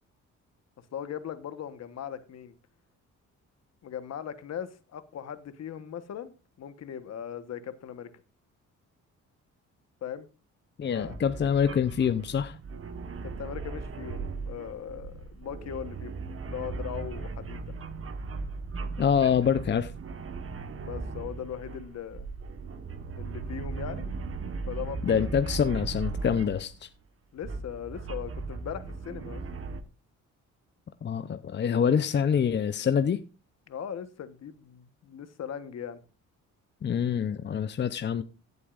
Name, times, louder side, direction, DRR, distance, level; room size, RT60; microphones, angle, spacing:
voice 1, 0.9-2.6 3.8-6.3 6.6-8.1 10.0-10.3 10.9-11.1 13.2-16.1 16.4-17.6 20.7-22.3 23.2-24.1 24.7-25.3 27.3-29.4 33.7-36.0, left 8 dB, 60° left, 1.2 m, -39 dB
voice 2, 10.8-12.6 19.0-19.9 25.0-26.9 31.0-33.2 36.8-38.2, left 7 dB, 35° left, 0.7 m, -26 dB
sound 1, 11.0-26.8 27.4-29.8, right 4 dB, 45° right, 1.3 m, -37 dB
16.0 x 8.3 x 2.5 m
cardioid pair, 90°, 30 cm